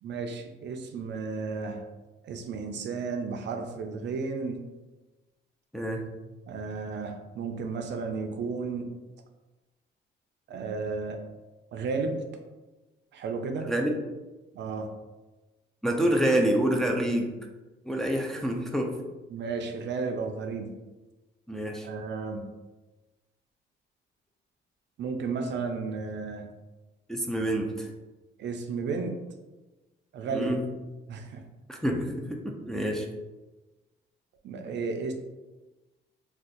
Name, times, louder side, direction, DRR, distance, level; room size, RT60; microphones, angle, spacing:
voice 1, 0.0-1.9 2.2-4.6 6.5-9.0 10.5-11.2 11.7-12.2 13.1-13.7 14.5-14.9 19.3-20.7 21.7-22.5 25.0-26.5 28.4-29.2 30.1-30.5 31.1-31.4 34.4-35.1, right 4 dB, 65° right, 5 dB, 0.4 m, -33 dB
voice 2, 5.7-6.1 13.7-14.0 15.8-17.3 17.9-19.0 21.5-21.9 27.1-27.9 30.3-30.7 31.7-33.1, right 1 dB, ahead, 1 dB, 0.4 m, -27 dB
2.5 x 2.3 x 3.7 m, 1.1 s
cardioid pair, 90°, 20 cm